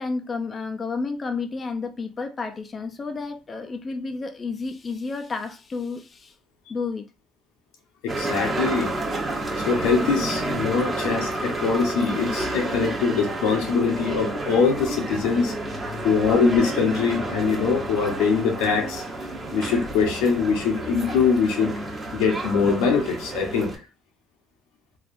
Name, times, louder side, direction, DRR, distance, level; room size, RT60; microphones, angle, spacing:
voice 1, 0.0-6.3 6.7-7.0 13.9-14.2 15.7-16.2, left 4 dB, 30° left, 0.4 m, -31 dB
voice 2, 8.0-8.9 9.3-15.5 16.0-19.0 19.5-21.7 22.1-23.7, left 5 dB, 85° left, 0.8 m, -23 dB
sound 1, 8.1-23.8, right 2 dB, 25° right, 1.0 m, -30 dB
3.2 x 2.3 x 2.5 m
supercardioid pair, 90°, 0 cm